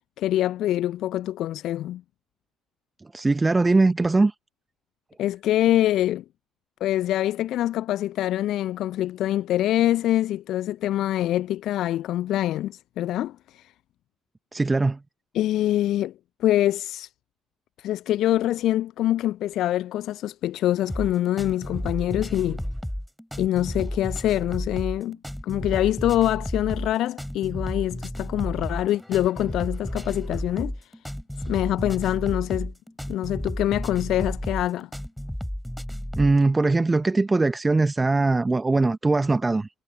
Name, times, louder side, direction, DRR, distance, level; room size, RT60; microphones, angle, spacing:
voice 1, 0.2-2.0 5.2-6.2 6.8-13.7 15.3-16.1 16.4-17.1 17.8-22.6 23.4-25.2 25.4-30.9 31.5-32.7 33.1-34.9, left 13 dB, 60° left, 0.6 m, -25 dB
voice 2, 3.1-4.3 14.5-15.0 36.2-39.7, right 3 dB, 20° right, 0.9 m, -21 dB
sound 1, 20.9-36.4, equal, 5° left, 6.0 m, -32 dB
figure-of-eight pair, 50°, 0 cm